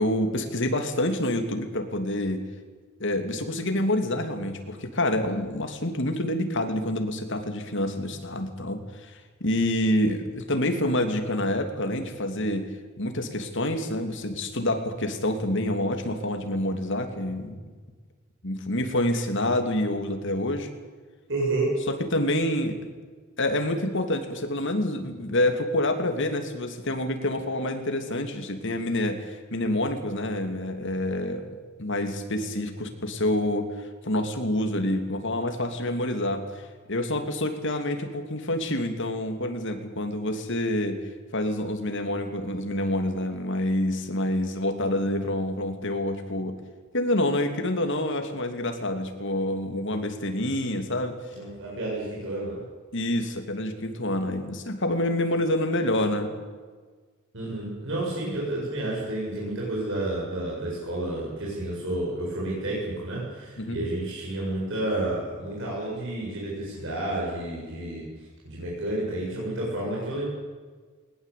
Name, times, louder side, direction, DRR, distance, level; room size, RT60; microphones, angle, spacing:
voice 1, 0.0-2.4 3.0-9.1 9.4-12.6 13.0-17.6 18.4-20.7 21.9-22.8 23.4-31.4 31.8-36.6 36.9-41.0 41.3-46.5 46.9-51.2 52.9-56.3 63.6-63.8, left 1 dB, 60° left, 6 dB, 3.0 m, -27 dB
voice 2, 21.3-21.8 51.3-52.6 57.3-68.0 68.4-70.3, right 1 dB, 65° right, -5 dB, 7.7 m, -30 dB
20.5 x 20.0 x 8.6 m, 1.5 s
head